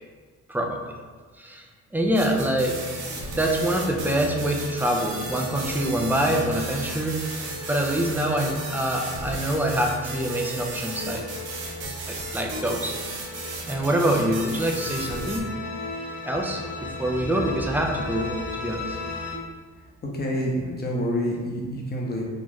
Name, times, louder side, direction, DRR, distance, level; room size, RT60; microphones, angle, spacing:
voice 1, 0.5-0.8 1.4-1.7 1.9-2.8 3.3-11.2 12.1-13.0 13.7-15.5 16.2-19.0, right 1 dB, 5° right, 1 dB, 0.4 m, -25 dB
sound 1, 2.0-19.3, left 2 dB, 75° left, 0.9 m, -36 dB
sound 2, 2.1-15.4, right 3 dB, 85° right, 0.8 m, -36 dB
voice 2, 20.1-22.2, equal, 30° left, -2 dB, 0.8 m, -27 dB
3.7 x 2.4 x 3.0 m, 1.5 s
cardioid pair, 90°, 30 cm